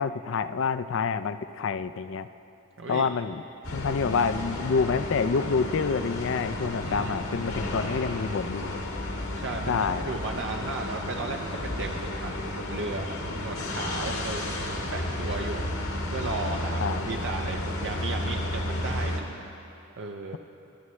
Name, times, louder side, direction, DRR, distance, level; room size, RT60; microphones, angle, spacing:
voice 1, 0.0-2.3 2.9-3.4 3.7-8.8 9.7-10.2 16.8-17.1, left 5 dB, 65° left, 12 dB, 0.4 m, -27 dB
voice 2, 2.8-3.1 6.8-7.5 9.3-15.7 16.1-19.2 20.0-20.4, right 3 dB, 65° right, 2 dB, 0.6 m, -35 dB
sound 1, 3.6-19.2, left 1 dB, 80° left, 1.6 m, -32 dB
27.0 x 9.4 x 3.2 m, 2.9 s
head